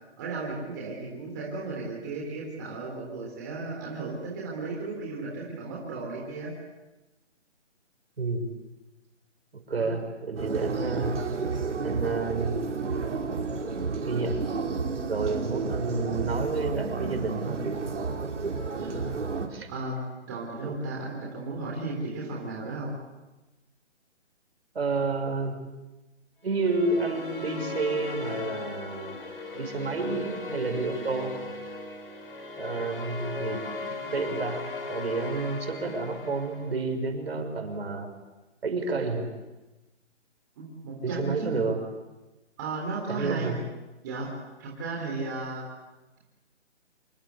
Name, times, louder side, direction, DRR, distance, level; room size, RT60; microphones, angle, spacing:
voice 1, 0.2-6.5 9.8-9.9 10.5-10.7 18.7-19.1 19.7-22.9 40.6-41.5 42.6-43.5 44.0-44.3 44.6-45.6, right 3 dB, 15° right, -3 dB, 3.6 m, -35 dB
voice 2, 8.2-8.5 9.5-11.2 11.8-12.6 13.2-13.3 14.0-14.6 15.1-17.6 19.5-19.7 20.6-20.8 24.7-25.6 26.4-29.2 29.5-31.3 32.6-38.1 38.6-39.3 41.0-41.8 43.1-43.6, right 3 dB, 60° right, 5 dB, 6.0 m, -30 dB
sound 1, 10.4-19.5, right 4 dB, 80° right, 4.9 m, -31 dB
sound 2, 26.5-36.9, left 3 dB, 50° left, 5.5 m, -37 dB
27.5 x 26.0 x 8.4 m, 1.1 s
hypercardioid pair, 180°, 35 cm